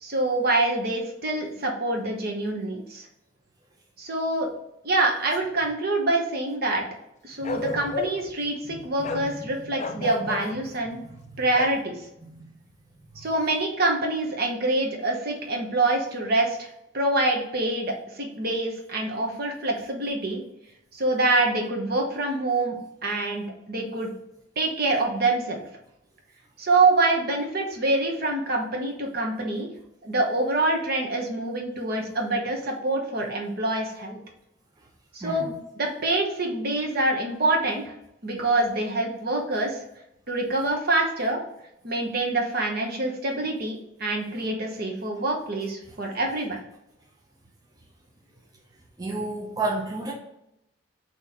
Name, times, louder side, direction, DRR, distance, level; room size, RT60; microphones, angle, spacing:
voice 1, 0.0-3.1 4.0-4.5 4.8-6.8 7.2-11.0 11.4-12.0 13.2-20.4 20.9-24.1 24.6-25.6 26.6-29.7 30.0-34.2 35.1-37.9 38.2-39.8 40.3-41.4 41.8-46.6, right 2 dB, 50° right, 1 dB, 0.9 m, -26 dB
Bark, 7.4-8.3 9.0-9.3 9.8-10.5 11.5-11.8, left 3 dB, 35° left, 0.3 m, -32 dB
voice 2, 7.4-7.9 9.0-9.3 9.6-9.7 10.0-10.1 11.3-11.4 12.2-12.6 35.2-35.5 49.0-50.1, right 2 dB, 20° right, -2 dB, 0.6 m, -32 dB
4.1 x 3.0 x 4.1 m, 0.82 s
head